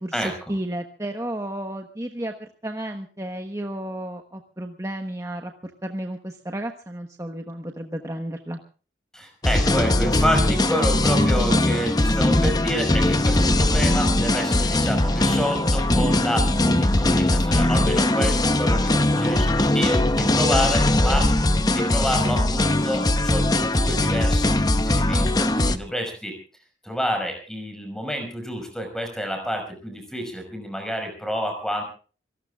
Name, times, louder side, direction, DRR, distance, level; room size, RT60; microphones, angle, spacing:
voice 1, 0.0-8.6 20.1-20.4, right 1 dB, 15° right, 4 dB, 1.2 m, -32 dB
voice 2, 9.1-21.4 21.7-26.3 26.8-31.8, equal, 5° left, 4 dB, 5.4 m, -28 dB
sound 1, 9.4-25.8, left 1 dB, 20° left, 0.8 m, -20 dB
27.0 x 18.5 x 2.4 m, 0.39 s
head